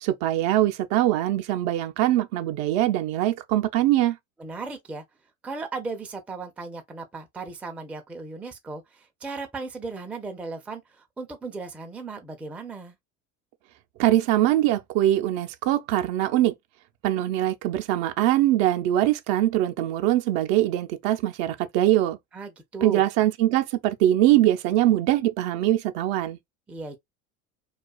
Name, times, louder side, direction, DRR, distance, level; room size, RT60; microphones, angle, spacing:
voice 1, 0.0-4.2 14.0-16.5 17.0-22.2 22.8-26.4, right 13 dB, 65° right, 0.5 m, -22 dB
voice 2, 4.4-5.0 5.4-13.0 22.3-23.0 26.7-27.0, right 3 dB, 5° right, 0.4 m, -36 dB
2.3 x 2.3 x 2.3 m
hypercardioid pair, 85°, 42 cm